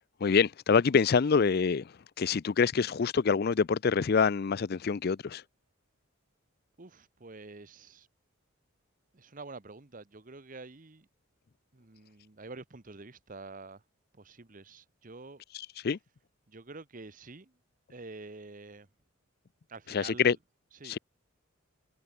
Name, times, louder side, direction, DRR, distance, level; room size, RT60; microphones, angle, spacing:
voice 1, 0.2-5.4 15.8-16.0 19.9-20.4 20.8-21.0, left 5 dB, 50° left, 0.4 m, -26 dB
voice 2, 6.8-8.1 9.1-11.1 11.7-13.8 14.1-15.4 16.5-17.6 17.9-18.9 19.7-20.4 20.8-21.0, right 3 dB, 40° right, 1.0 m, -47 dB
head